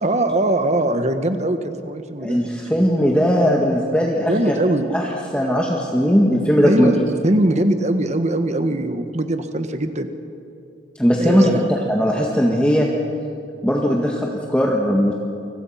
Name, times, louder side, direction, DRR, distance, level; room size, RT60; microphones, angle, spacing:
voice 1, 0.0-2.4 4.2-4.9 6.6-7.0 7.2-10.1 11.2-11.7, right 1 dB, 40° right, 8 dB, 1.5 m, -21 dB
voice 2, 2.2-4.6 4.9-5.0 5.3-6.9 11.0-11.5 11.9-12.9 13.6-15.1, equal, 5° left, -2 dB, 1.9 m, -18 dB
30.0 x 25.5 x 5.9 m, 2.6 s
head